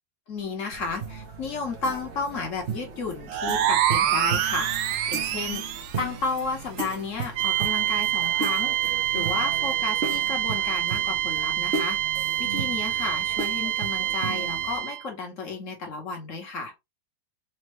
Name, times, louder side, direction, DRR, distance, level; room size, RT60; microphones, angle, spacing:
voice 1, 0.3-5.6 6.0-12.0 12.4-16.7, left 4 dB, 45° left, 1.4 m, -33 dB
sound 1, 0.7-14.8, right 4 dB, 45° right, 1.0 m, -36 dB
sound 2, 3.3-6.0, right 10 dB, 70° right, 1.0 m, -25 dB
sound 3, 7.4-15.1, right 13 dB, 90° right, 1.4 m, -26 dB
4.3 x 2.9 x 3.1 m
omnidirectional pair, 2.0 m